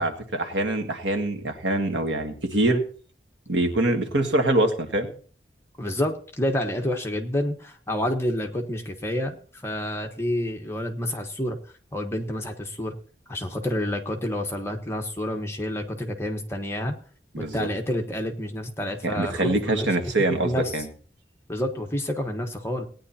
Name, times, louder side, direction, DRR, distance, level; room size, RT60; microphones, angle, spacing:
voice 1, 0.0-2.8 3.5-5.1 17.3-17.7 19.0-20.9, right 2 dB, 75° right, 5 dB, 1.7 m, -24 dB
voice 2, 5.8-11.6 11.9-12.9 13.3-16.9 17.4-19.9 20.4-20.7 21.5-22.9, left 1 dB, 15° left, 3 dB, 1.2 m, -29 dB
18.5 x 9.9 x 2.8 m, 0.41 s
head